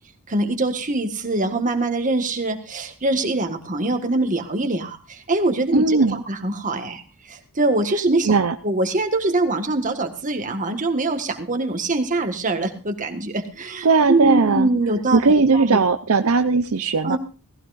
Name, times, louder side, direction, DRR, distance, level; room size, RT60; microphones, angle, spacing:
voice 1, 0.3-8.3 8.6-15.2 15.5-15.8 17.0-17.2, right 2 dB, 35° right, 5 dB, 1.7 m, -23 dB
voice 2, 5.7-6.2 8.3-8.5 13.8-14.7 15.1-17.2, right 4 dB, 70° right, 8 dB, 0.7 m, -18 dB
18.0 x 16.0 x 2.6 m, 0.33 s
head